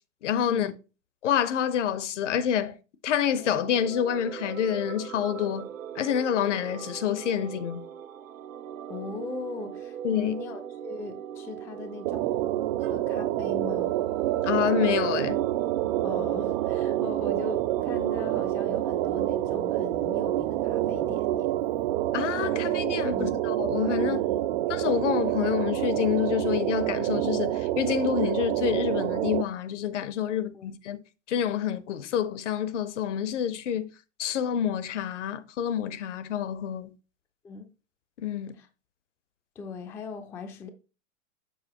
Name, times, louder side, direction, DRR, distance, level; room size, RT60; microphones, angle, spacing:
voice 1, 0.2-0.7 1.2-2.7 3.0-5.7 6.0-7.8 10.0-10.3 14.4-15.4 22.1-24.2 24.7-31.0 31.3-33.9 34.2-36.9 38.2-38.5, left 9 dB, 65° left, 0.9 m, -28 dB
sound 1, 3.3-22.6, right 9 dB, 90° right, 0.6 m, -40 dB
voice 2, 8.9-12.4 12.8-14.0 16.0-21.5 23.1-23.3 24.0-24.6 30.5-30.7 37.4-37.7 38.5-38.7 39.6-40.7, left 4 dB, 5° left, 0.3 m, -39 dB
sound 2, 12.0-29.4, right 14 dB, 45° right, 0.5 m, -27 dB
6.8 x 6.2 x 2.9 m
hypercardioid pair, 110°, 38 cm